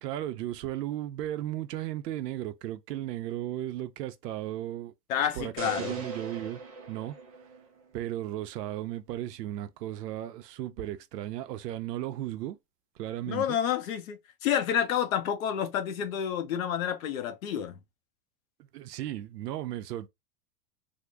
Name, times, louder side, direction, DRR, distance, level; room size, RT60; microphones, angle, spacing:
voice 1, 0.0-4.9 5.4-6.6 6.9-7.2 7.9-12.6 13.0-13.6 18.7-20.1, right 13 dB, 85° right, 0.7 m, -35 dB
voice 2, 5.1-6.0 13.3-17.7, left 9 dB, 60° left, 0.7 m, -29 dB
sound 1, 5.6-7.9, right 4 dB, 25° right, 0.4 m, -40 dB
3.6 x 2.1 x 3.4 m
supercardioid pair, 175°, 47 cm